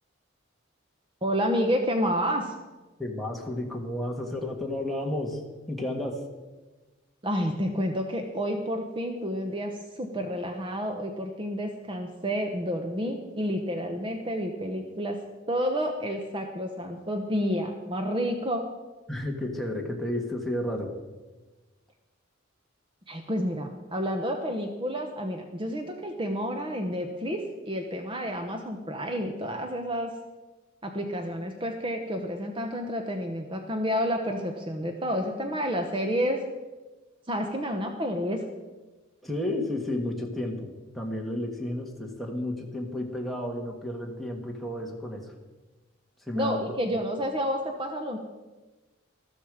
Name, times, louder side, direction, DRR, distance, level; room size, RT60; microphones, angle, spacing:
voice 1, 1.2-2.5 7.2-15.2 15.5-18.6 23.1-30.2 30.8-36.4 37.3-38.4 46.3-48.2, equal, 25° right, 4 dB, 1.0 m, -30 dB
voice 2, 3.0-5.4 5.7-6.2 19.1-21.0 39.2-45.3 46.2-46.6, left 1 dB, ahead, -1 dB, 1.7 m, -32 dB
13.5 x 13.0 x 5.0 m, 1.2 s
head